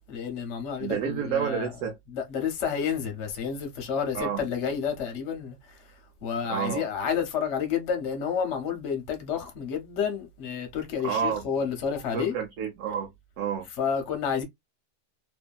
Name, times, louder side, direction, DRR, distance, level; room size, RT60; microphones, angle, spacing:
voice 1, 0.1-5.8 6.2-12.3 13.7-14.4, left 7 dB, 55° left, 0.9 m, -30 dB
voice 2, 0.8-2.0 4.1-4.4 6.5-6.9 11.0-11.4 12.1-13.1 13.4-13.7, right 7 dB, 75° right, 1.1 m, -29 dB
2.7 x 2.6 x 2.2 m
omnidirectional pair, 1.6 m